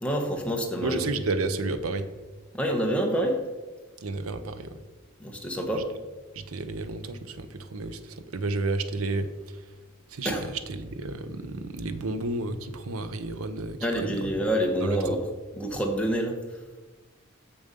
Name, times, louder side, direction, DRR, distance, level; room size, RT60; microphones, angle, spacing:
voice 1, 0.0-1.0 2.5-3.4 5.2-5.9 10.2-10.5 13.8-15.2 15.5-16.4, right 1 dB, 5° left, 1 dB, 1.1 m, -27 dB
voice 2, 0.8-2.1 4.0-4.8 5.7-5.8 6.3-9.7 10.1-14.4 14.8-15.0, right 2 dB, 90° right, 11 dB, 0.7 m, -32 dB
6.9 x 6.8 x 5.3 m, 1.2 s
head